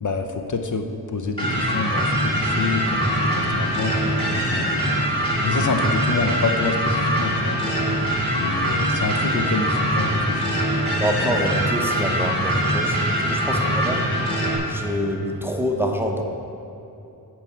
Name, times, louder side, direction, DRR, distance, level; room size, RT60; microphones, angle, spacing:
voice 1, 0.0-4.8 5.4-7.6 8.4-10.6, left 4 dB, 50° left, 5 dB, 0.6 m, -27 dB
sound 1, 1.4-14.6, equal, 15° left, 1.9 m, -23 dB
voice 2, 10.9-13.0 13.3-14.1 14.6-16.2, equal, 5° right, 2 dB, 0.7 m, -26 dB
9.1 x 4.7 x 7.1 m, 3.0 s
wide cardioid pair, 125°, 38 cm